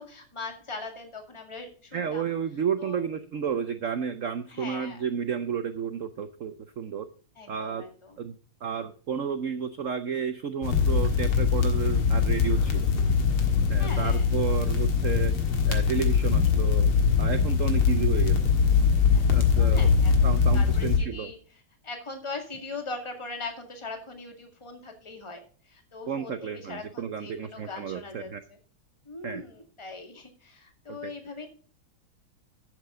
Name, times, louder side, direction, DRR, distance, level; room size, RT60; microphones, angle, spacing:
voice 1, 0.0-2.3 2.8-3.0 4.5-5.0 7.4-8.2 13.8-14.3 19.1-21.4 21.8-28.6 29.1-31.5, left 3 dB, 15° left, 4 dB, 1.9 m, -40 dB
voice 2, 1.9-7.1 7.5-7.8 8.2-8.3 8.6-12.9 13.7-15.3 15.7-16.9 17.2-18.4 19.3-19.9 20.2-21.3 26.1-28.4 29.2-29.4 31.0-31.1, right 7 dB, 70° right, 10 dB, 0.7 m, -32 dB
sound 1, 10.6-21.0, left 6 dB, 90° left, 2.5 m, -22 dB
11.5 x 8.0 x 3.7 m, 0.42 s
omnidirectional pair, 2.3 m